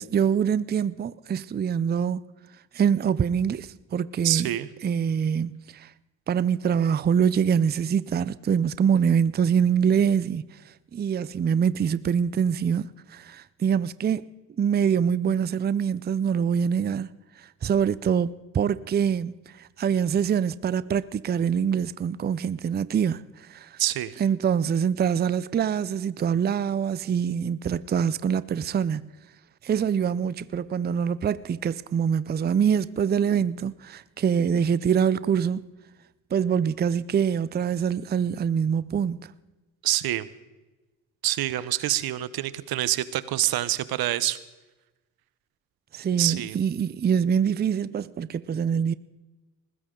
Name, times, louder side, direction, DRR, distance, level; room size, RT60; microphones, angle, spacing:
voice 1, 0.0-2.2 2.7-4.5 4.8-5.9 6.3-10.4 10.9-14.3 14.6-17.1 17.6-18.3 18.5-19.4 19.8-23.2 23.5-23.8 24.2-29.0 29.6-35.6 36.3-39.2 45.9-48.9, right 7 dB, 25° right, 0.5 m, -24 dB
voice 2, 4.2-4.7 23.8-24.2 39.8-40.3 41.2-44.4 46.2-46.6, right 14 dB, 80° right, 0.8 m, -26 dB
20.0 x 15.5 x 3.8 m
cardioid pair, 80°, 36 cm